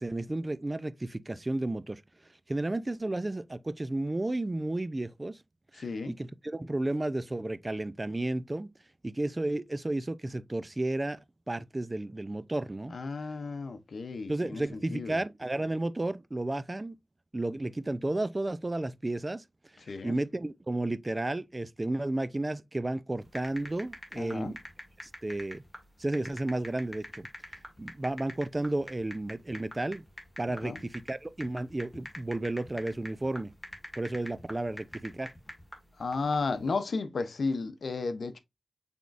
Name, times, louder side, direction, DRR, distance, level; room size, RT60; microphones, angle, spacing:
voice 1, 0.0-2.0 2.5-5.4 5.7-8.7 9.0-11.2 11.5-13.0 14.3-17.0 17.3-19.4 20.0-24.6 25.0-25.6 26.0-27.3 27.8-30.0 30.4-33.5 34.0-35.3, right 2 dB, 30° right, 0.4 m, -32 dB
voice 2, 5.7-6.1 12.9-15.2 19.9-20.2 24.2-24.5 30.5-30.8 36.0-38.4, left 4 dB, 80° left, 0.7 m, -33 dB
sound 1, 23.2-36.7, equal, 5° left, 2.3 m, -45 dB
6.0 x 3.5 x 2.5 m
cardioid pair, 50°, 0 cm